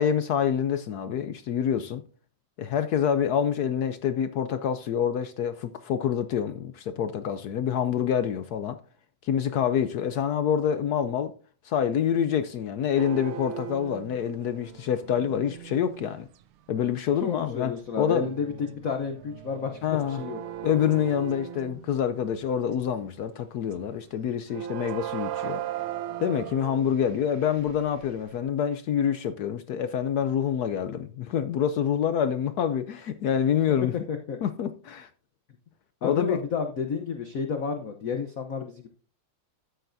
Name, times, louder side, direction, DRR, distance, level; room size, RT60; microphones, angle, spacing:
voice 1, 0.0-2.0 2.6-8.8 9.2-11.3 11.6-16.3 16.7-18.3 19.8-20.2 20.6-25.6 26.2-33.9 34.4-35.1 36.0-36.4, left 8 dB, 75° left, 0.9 m, -26 dB
sound 1, 13.0-16.4 16.9-17.1 17.7-23.2 23.7-24.0 24.5-28.4, right 12 dB, 90° right, 1.6 m, -39 dB
voice 2, 17.2-20.4 34.1-34.4 36.0-38.9, left 6 dB, 55° left, 1.0 m, -31 dB
13.5 x 9.0 x 2.6 m
omnidirectional pair, 2.3 m